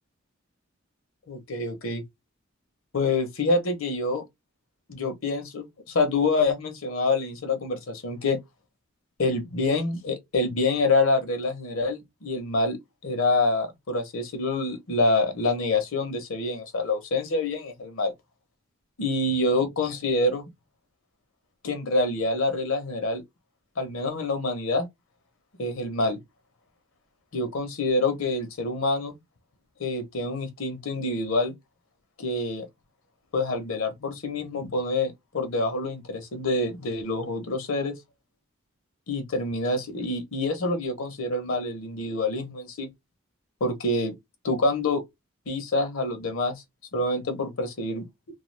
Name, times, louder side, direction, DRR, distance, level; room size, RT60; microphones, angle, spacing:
voice 1, 1.3-2.0 2.9-4.2 4.9-8.4 9.2-12.8 13.0-18.1 19.0-20.5 21.6-23.2 23.8-24.9 25.6-26.2 27.3-29.2 29.8-31.5 32.2-32.7 33.3-37.9 39.1-42.9 43.6-44.1 44.4-45.0 45.5-46.6 46.9-48.0, left 2 dB, 75° left, 0.8 m, -26 dB
2.3 x 2.3 x 3.1 m
head